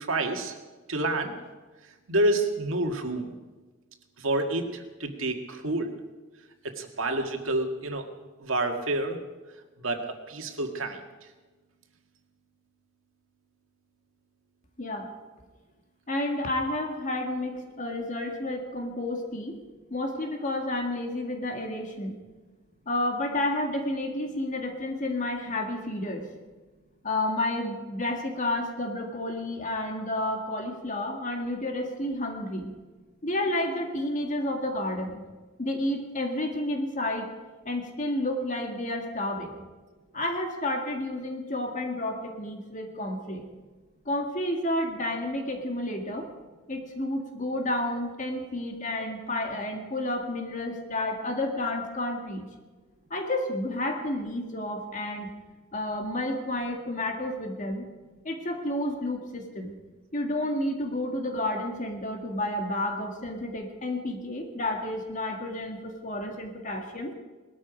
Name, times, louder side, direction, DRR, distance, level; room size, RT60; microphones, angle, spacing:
voice 1, 0.1-0.5 0.9-1.4 2.1-3.3 4.2-5.9 6.6-8.1 8.4-9.2 9.8-10.0 10.3-11.0, right 2 dB, 85° right, 4 dB, 1.9 m, -28 dB
voice 2, 14.8-15.1 16.1-19.6 19.9-22.2 22.9-26.3 27.0-32.7 33.2-35.2 35.6-37.3 37.7-39.5 40.1-43.5 44.1-46.3 46.7-52.5 53.1-55.3 55.7-57.9 58.2-59.8 60.1-67.1, left 1 dB, 40° left, 3 dB, 1.9 m, -31 dB
19.5 x 13.0 x 5.1 m, 1.3 s
head